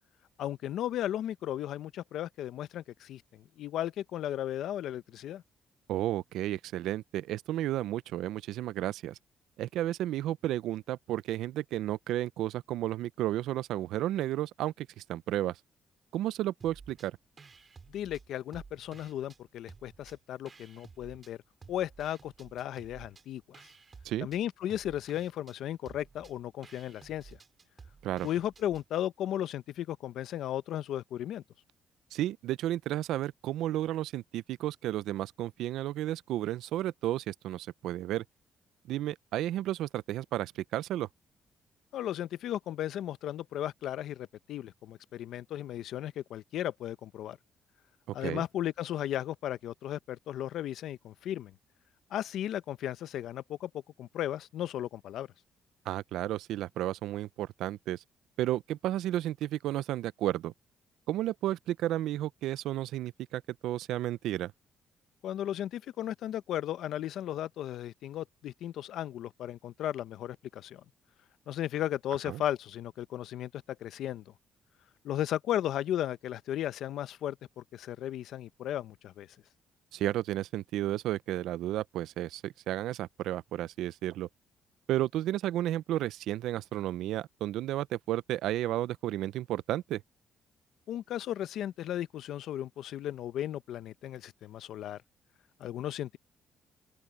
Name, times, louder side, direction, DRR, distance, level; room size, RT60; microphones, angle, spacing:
voice 1, 0.4-5.4 17.9-21.4 21.7-23.6 24.2-27.4 28.2-31.4 41.9-47.4 48.1-51.5 52.1-55.3 65.2-70.8 71.5-74.2 75.0-79.4 90.9-95.0 95.6-96.2, left 11 dB, 80° left, 0.8 m, -35 dB
voice 2, 5.9-9.2 9.6-15.6 16.1-17.2 24.0-24.3 28.0-28.3 32.1-38.2 38.9-41.1 48.2-48.4 55.9-58.0 58.4-60.5 61.1-64.5 72.3-72.4 79.9-84.3 84.9-90.0, right 13 dB, 85° right, 0.5 m, -32 dB
sound 1, 16.6-17.1 17.4-19.4 19.7-21.3 21.6-28.9, right 5 dB, 35° right, 4.5 m, -54 dB
open air
cardioid pair, 90°, 0 cm